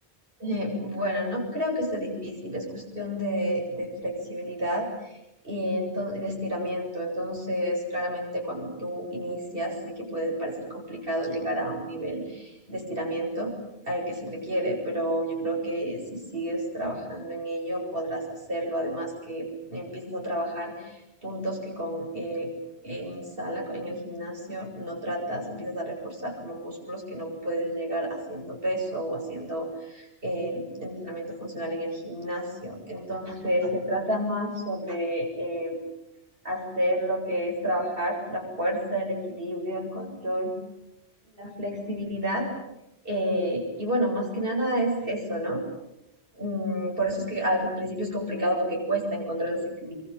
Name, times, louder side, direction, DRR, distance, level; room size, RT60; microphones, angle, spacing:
voice 1, 0.4-5.2 5.4-13.5 13.9-22.5 22.8-35.8 36.4-40.5 41.4-42.5 43.0-45.6 46.4-49.9, equal, 60° right, -1 dB, 7.6 m, -30 dB
27.5 x 24.5 x 9.0 m, 0.92 s
omnidirectional pair, 1.1 m